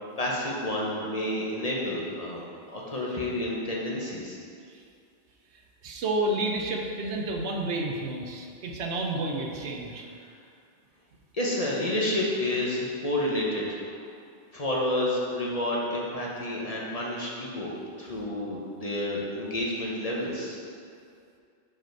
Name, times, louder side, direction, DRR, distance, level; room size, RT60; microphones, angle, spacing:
voice 1, 0.2-2.4 2.7-4.4 11.3-13.8 14.5-17.7 18.0-20.6, left 1 dB, 35° left, -4 dB, 0.8 m, -29 dB
voice 2, 5.8-10.0, right 2 dB, 75° right, 1 dB, 1.0 m, -30 dB
4.9 x 4.9 x 4.5 m, 2.3 s
omnidirectional pair, 1.2 m